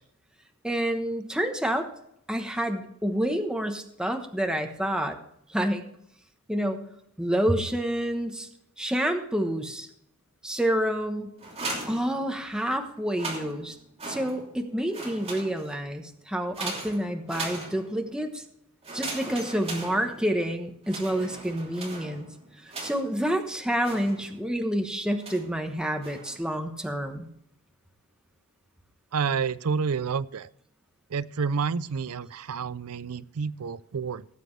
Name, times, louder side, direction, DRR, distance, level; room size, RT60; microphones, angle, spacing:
voice 1, 0.6-1.9 2.3-5.2 5.5-5.8 6.5-6.9 7.2-8.5 8.8-9.9 10.4-11.4 11.9-13.8 14.1-18.4 18.9-22.3 22.6-27.3, equal, 5° right, 4 dB, 1.0 m, -28 dB
sound 1, 11.4-12.6 13.0-14.6 14.9-15.9 16.5-18.1 18.8-20.5 20.8-23.2 23.8-24.6 25.2-25.6 26.0-26.5, right 2 dB, 30° right, 2.9 m, -39 dB
voice 2, 29.1-30.5 31.1-34.3, right 5 dB, 75° right, 18 dB, 0.5 m, -29 dB
17.5 x 7.7 x 3.2 m, 0.73 s
head